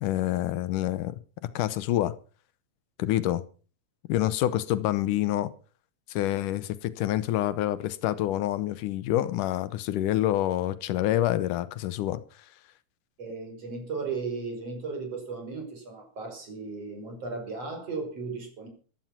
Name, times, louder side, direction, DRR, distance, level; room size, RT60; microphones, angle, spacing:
voice 1, 0.0-1.1 1.6-2.1 3.0-3.4 4.1-5.5 6.1-12.2, left 13 dB, 80° left, 2.4 m, -27 dB
voice 2, 13.2-18.7, right 4 dB, 50° right, 6.3 m, -36 dB
15.0 x 12.5 x 5.8 m
omnidirectional pair, 3.6 m